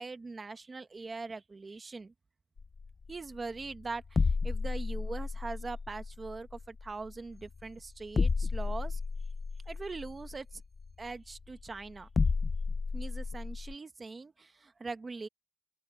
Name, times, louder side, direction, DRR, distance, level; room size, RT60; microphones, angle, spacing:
voice 1, 0.0-2.1 3.1-9.0 9.7-10.6 11.0-12.1 12.9-15.3, right 3 dB, 40° right, 1.2 m, -42 dB
sound 1, 2.6-13.7, left 4 dB, 45° left, 0.5 m, -33 dB
open air
wide cardioid pair, 130°, 0 cm